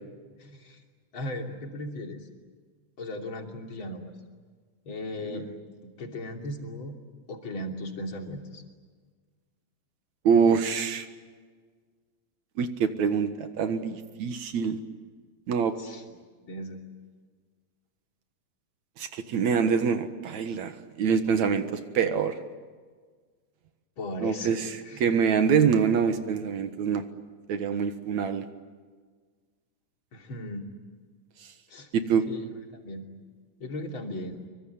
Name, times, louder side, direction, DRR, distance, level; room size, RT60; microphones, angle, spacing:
voice 1, 0.4-0.8 1.1-2.2 3.0-4.1 4.9-5.5 6.0-7.0 7.3-8.6 15.8-16.0 16.4-16.8 24.0-25.1 30.1-30.6 31.7-31.9 32.3-33.0 33.6-34.4, left 1 dB, 35° left, 3 dB, 3.4 m, -37 dB
voice 2, 10.2-11.1 12.6-14.8 15.5-15.7 19.0-20.7 21.0-22.3 24.2-24.7 25.0-27.0 27.5-28.5 31.9-32.3, right 6 dB, 60° right, 9 dB, 2.5 m, -25 dB
26.5 x 23.5 x 9.4 m, 1.5 s
omnidirectional pair, 4.1 m